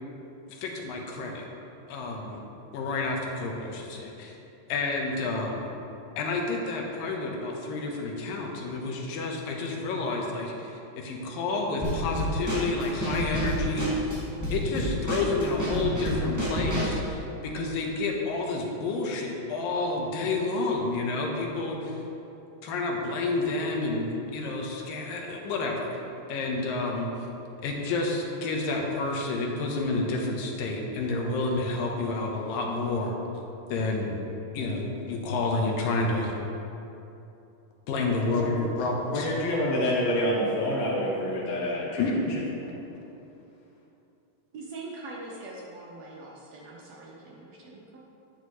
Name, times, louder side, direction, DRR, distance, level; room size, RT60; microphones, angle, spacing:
voice 1, 0.5-1.5 1.9-2.4 2.7-4.3 4.7-5.7 6.2-14.1 14.5-22.0 22.6-25.9 26.3-27.1 27.6-33.1 33.7-34.2 34.5-36.3 37.9-39.3 42.0-42.3, left 3 dB, 85° left, 0 dB, 2.7 m, -29 dB
Drum kit / Snare drum, 11.8-17.0, equal, 25° right, 0.4 m, -30 dB
voice 2, 39.1-42.4, left 1 dB, 60° left, -6 dB, 2.1 m, -27 dB
voice 3, 44.5-48.0, right 2 dB, 75° right, -2 dB, 1.6 m, -42 dB
10.5 x 10.0 x 3.1 m, 2.9 s
omnidirectional pair, 4.0 m